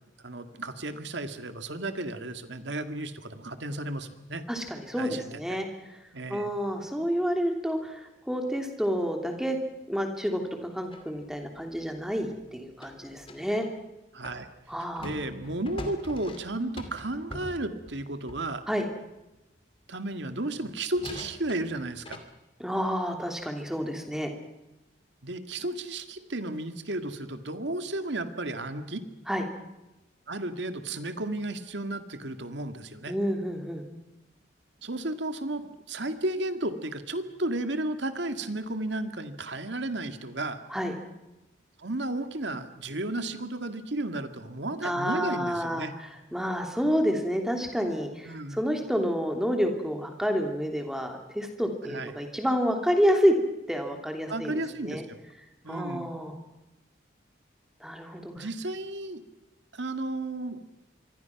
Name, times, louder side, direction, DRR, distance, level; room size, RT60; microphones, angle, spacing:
voice 1, 0.2-4.4 5.0-5.6 6.1-6.6 14.1-14.5 15.0-18.7 19.9-22.2 25.2-29.0 30.3-33.1 34.8-40.6 41.8-45.9 48.3-48.6 51.9-52.1 54.3-55.2 55.6-56.1 58.4-59.2 59.7-60.6, right 2 dB, 75° right, 8 dB, 2.0 m, -33 dB
voice 2, 4.5-6.0 6.3-9.6 9.9-13.7 14.7-15.1 18.7-18.8 22.6-24.3 29.3-29.4 33.1-33.8 40.7-40.9 44.8-53.3 53.7-55.0 55.7-56.4 57.8-58.5, equal, 5° right, 3 dB, 2.9 m, -29 dB
sound 1, 10.9-13.8 14.2-18.6 20.3-20.4 20.9-22.2, left 1 dB, 30° left, 2.5 m, -44 dB
27.0 x 24.0 x 6.0 m, 0.99 s
head